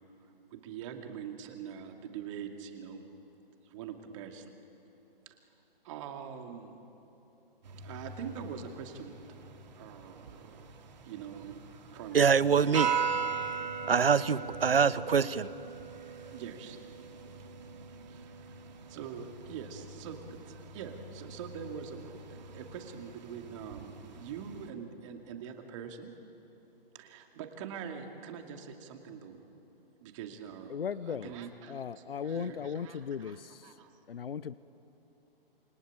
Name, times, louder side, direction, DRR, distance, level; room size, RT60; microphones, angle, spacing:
voice 1, 0.5-3.0 3.6-4.4 5.3-5.4 5.8-6.8 7.8-9.2 9.8-10.7 11.0-11.6 11.9-13.0 16.3-16.8 18.1-18.6 18.9-26.1 26.9-29.4 30.0-30.8 31.1-31.8 32.2-33.4 33.6-33.9, right 7 dB, 30° right, 2.6 m, -44 dB
sound 1, 7.6-24.7, right 6 dB, 45° right, 2.6 m, -40 dB
voice 2, 12.1-12.9 13.9-15.5, right 6 dB, 75° right, 1.0 m, -24 dB
voice 3, 30.7-31.3 31.7-33.8 34.1-34.5, left 7 dB, 70° left, 0.8 m, -37 dB
28.0 x 23.5 x 9.0 m
figure-of-eight pair, 135°, 29 cm